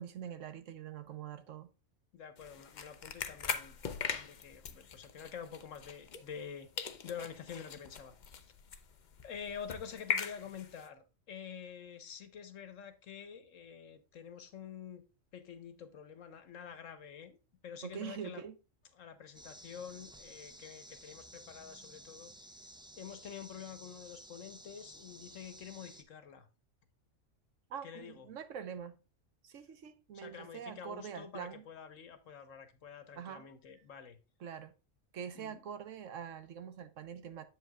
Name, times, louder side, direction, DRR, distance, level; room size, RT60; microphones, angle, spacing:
voice 1, 0.0-1.7 17.8-18.6 27.7-29.0 29.4-31.6 33.2-33.5 34.4-34.7 35.1-37.4, right 8 dB, 80° right, 1.3 m, -44 dB
voice 2, 2.1-3.8 4.1-8.5 9.2-15.0 15.3-17.4 17.6-18.4 19.0-22.3 23.0-26.5 27.8-28.3 30.1-34.2 35.3-35.6, left 7 dB, 85° left, 1.4 m, -48 dB
sound 1, 2.4-6.5 6.8-10.9, left 6 dB, 45° left, 0.7 m, -41 dB
sound 2, 19.3-26.0, right 1 dB, 5° right, 0.4 m, -54 dB
7.8 x 7.7 x 2.3 m
omnidirectional pair, 1.3 m